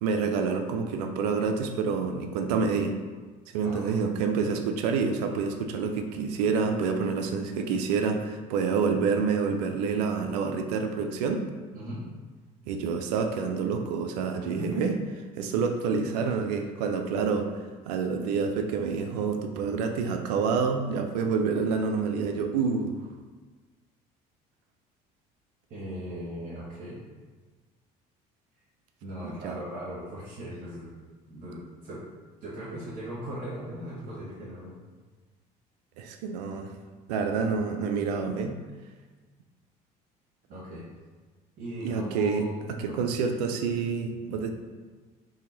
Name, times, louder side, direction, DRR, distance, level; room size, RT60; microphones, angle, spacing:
voice 1, 0.0-3.0 3.5-11.4 12.7-15.0 15.4-17.5 17.9-23.0 29.4-29.6 36.0-36.7 37.1-38.6 41.8-42.5 42.8-44.5, right 5 dB, 80° right, 5 dB, 0.4 m, -28 dB
voice 2, 11.7-12.0 14.6-14.8 25.7-27.0 29.0-30.9 31.3-32.0 32.4-34.8 40.5-40.8 41.6-43.0, equal, 55° right, -8 dB, 1.2 m, -38 dB
2.8 x 2.7 x 3.9 m, 1.4 s
hypercardioid pair, 65°, 20 cm